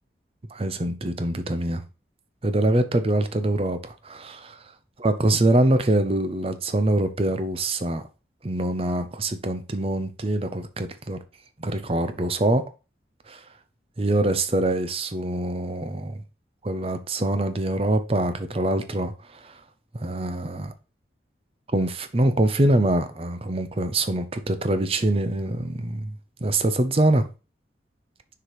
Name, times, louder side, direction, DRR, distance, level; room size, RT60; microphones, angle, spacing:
voice 1, 0.5-1.8 2.4-4.6 5.0-8.0 8.4-11.2 11.6-12.6 13.3-13.4 14.0-16.2 16.6-19.1 19.4-19.5 19.9-20.7 21.7-26.2 26.4-27.2, right 1 dB, 35° right, 0.7 m, -24 dB
6.4 x 4.9 x 3.1 m
head